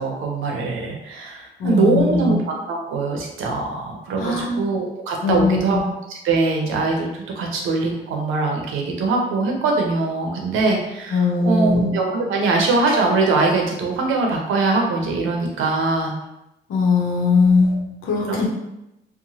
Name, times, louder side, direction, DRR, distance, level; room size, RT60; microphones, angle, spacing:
voice 1, 0.0-5.8 6.1-7.1 7.4-16.1 17.6-17.7 18.3-18.5, right 3 dB, 85° right, 1 dB, 0.6 m, -22 dB
voice 2, 1.6-2.3 4.2-4.5 5.2-5.6 11.1-11.9 16.7-17.8 18.0-18.5, left 4 dB, 85° left, -2 dB, 0.8 m, -19 dB
2.9 x 2.1 x 2.7 m, 0.91 s
cardioid pair, 90°, 20 cm